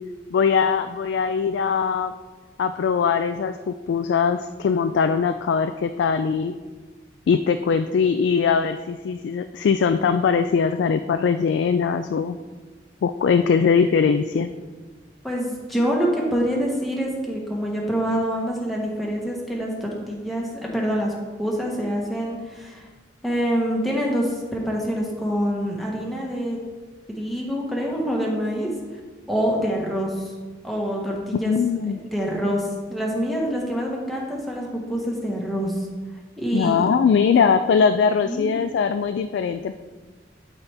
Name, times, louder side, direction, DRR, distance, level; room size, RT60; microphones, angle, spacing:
voice 1, 0.3-2.1 2.6-6.6 7.3-12.4 13.0-14.5 31.4-32.0 36.5-39.7, left 6 dB, 80° left, 9 dB, 0.3 m, -21 dB
voice 2, 15.2-22.9 23.2-26.6 27.1-28.7 29.3-30.3 30.6-31.5 31.9-35.9 36.4-36.8 38.2-38.5, equal, ahead, -3 dB, 1.2 m, -26 dB
11.5 x 4.2 x 3.4 m, 1.4 s
head